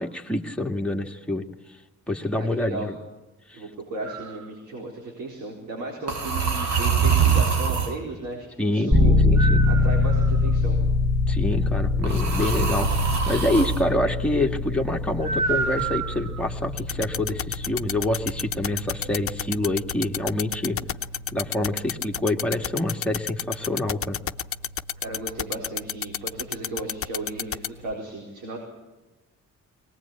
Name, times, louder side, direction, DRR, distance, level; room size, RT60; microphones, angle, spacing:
voice 1, 0.0-1.4 2.1-3.0 3.5-3.6 8.6-9.6 11.3-12.9 13.3-20.8 21.3-24.2, left 1 dB, 5° left, 1 dB, 1.8 m, -26 dB
voice 2, 2.3-2.9 3.5-9.2 9.7-10.8 25.0-28.6, right 2 dB, 90° right, -1 dB, 4.4 m, -35 dB
sound 1, 4.1-4.4 6.1-8.0 9.4-10.5 12.0-13.8 15.2-16.4, right 6 dB, 65° right, 2.2 m, -25 dB
sound 2, 8.9-25.7, left 3 dB, 20° right, 2.6 m, -25 dB
sound 3, 16.8-27.7, left 9 dB, 45° left, 0.8 m, -28 dB
22.0 x 19.5 x 8.7 m, 1.1 s
cardioid pair, 90°, 30 cm